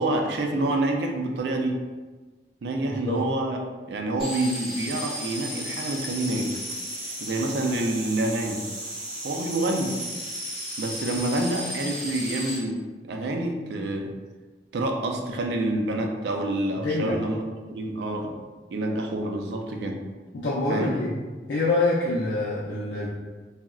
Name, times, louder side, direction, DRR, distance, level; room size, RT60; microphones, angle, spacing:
voice 1, 0.0-1.8 2.6-3.6 3.9-6.6 7.2-8.7 9.2-10.0 10.8-14.1 14.7-18.3 18.7-20.0 20.7-20.9, right 2 dB, 75° right, 2 dB, 0.4 m, -27 dB
voice 2, 2.9-3.2 16.8-17.2 20.3-21.2 21.5-23.1, left 2 dB, 90° left, -6 dB, 0.4 m, -25 dB
sound 1, 4.2-12.6, equal, ahead, 0.7 m, -34 dB
3.6 x 2.0 x 2.3 m, 1.3 s
head